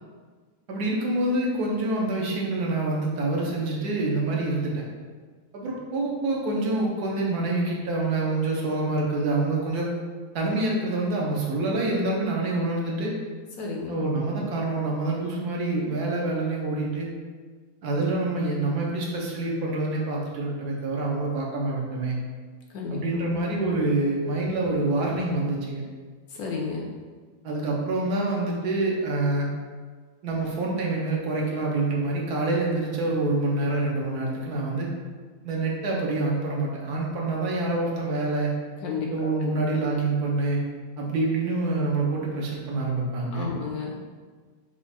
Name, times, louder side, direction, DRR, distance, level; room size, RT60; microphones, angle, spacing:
voice 1, 0.7-4.8 5.5-9.9 10.3-13.1 13.9-17.1 17.8-22.2 22.9-25.8 27.4-29.5 30.2-34.9 35.4-38.5 39.1-40.6 41.0-43.5, right 2 dB, 70° right, -3 dB, 1.3 m, -26 dB
voice 2, 13.6-14.0 22.7-23.3 26.3-26.9 38.8-39.5 43.3-43.9, left 4 dB, 70° left, 0 dB, 1.0 m, -32 dB
4.5 x 2.4 x 4.2 m, 1.5 s
omnidirectional pair, 1.8 m